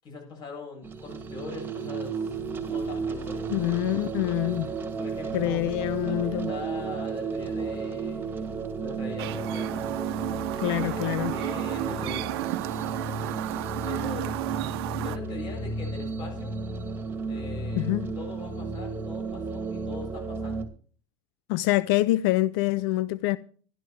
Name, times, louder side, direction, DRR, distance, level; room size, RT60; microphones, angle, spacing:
voice 1, 0.0-3.5 5.0-5.6 6.1-9.8 10.8-13.0 13.8-14.3 15.0-16.5 17.3-17.9 18.2-20.7, left 4 dB, 35° left, 7.8 m, -42 dB
sound 1, 0.8-20.6, right 4 dB, 15° right, 2.1 m, -33 dB
voice 2, 3.5-4.7 5.3-6.5 10.6-11.3 17.7-18.1 21.5-23.4, left 17 dB, 70° left, 0.6 m, -26 dB
Chirp tweet, 9.2-15.2, right 17 dB, 85° right, 0.8 m, -33 dB
13.0 x 11.5 x 4.7 m
supercardioid pair, 145°, 13 cm